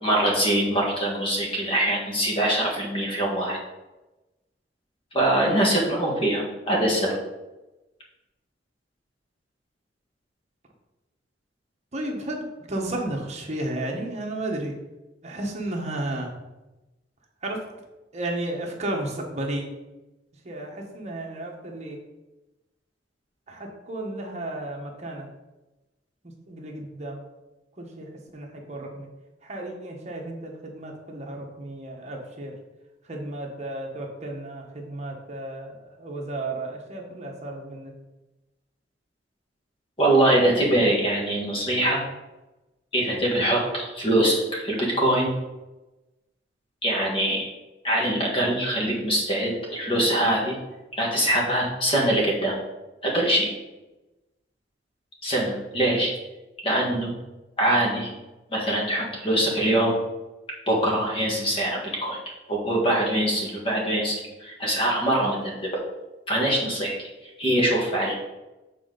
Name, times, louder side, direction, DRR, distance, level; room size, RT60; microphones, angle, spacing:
voice 1, 0.0-3.6 5.1-7.2 40.0-42.0 42.9-45.3 46.8-47.5 47.8-50.6 50.9-52.5 53.0-53.5 55.2-56.1 56.6-57.1 57.6-58.1 58.5-60.0 60.7-65.5 66.3-67.0 67.4-68.2, right 1 dB, 30° left, -2 dB, 1.6 m, -23 dB
voice 2, 11.9-14.7 15.2-16.3 17.4-17.6 18.1-19.7 20.4-22.0 23.5-25.3 26.5-27.2 27.8-29.1 29.4-32.5 33.1-37.9, right 1 dB, 40° right, 1 dB, 1.1 m, -33 dB
7.3 x 4.1 x 3.9 m, 1.1 s
head